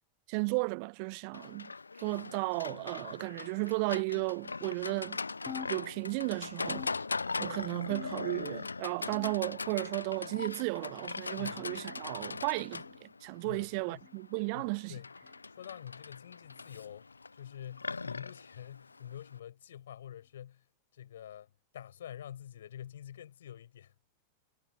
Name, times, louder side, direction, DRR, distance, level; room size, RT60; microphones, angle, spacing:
voice 1, 0.3-1.7 2.0-5.2 5.7-6.9 7.4-14.9, right 35 dB, 45° right, 0.4 m, -34 dB
Livestock farm animals working animals, 1.3-19.4, left 4 dB, 80° left, 0.4 m, -40 dB
sound 1, 5.5-6.3 6.7-7.5 7.9-8.5 9.1-9.7 10.3-10.7 11.6-11.8 12.8-13.0 14.0-14.2 15.2-15.4 16.4-16.6 17.7-17.8 18.9-19.0 20.1-20.2, left 7 dB, 20° left, 4.3 m, -48 dB
voice 2, 13.4-14.1 14.5-15.1 15.5-20.6 20.9-23.9, left 10 dB, 60° left, 6.6 m, -47 dB
figure-of-eight pair, 90°, 0 cm